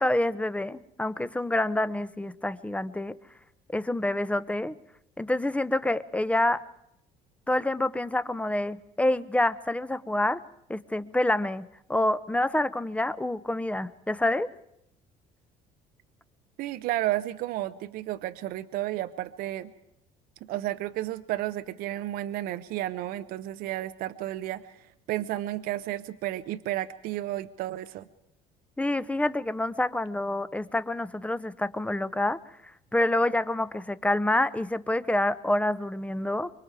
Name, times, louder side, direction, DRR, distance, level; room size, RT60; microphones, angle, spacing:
voice 1, 0.0-3.2 3.7-4.7 5.2-6.6 7.5-10.4 10.7-14.5 28.8-32.4 32.9-36.5, left 1 dB, 10° left, 15 dB, 0.8 m, -27 dB
voice 2, 16.6-19.7 20.4-28.1, right 14 dB, 70° right, 11 dB, 0.7 m, -32 dB
24.5 x 23.0 x 4.8 m, 0.80 s
supercardioid pair, 85°, 16 cm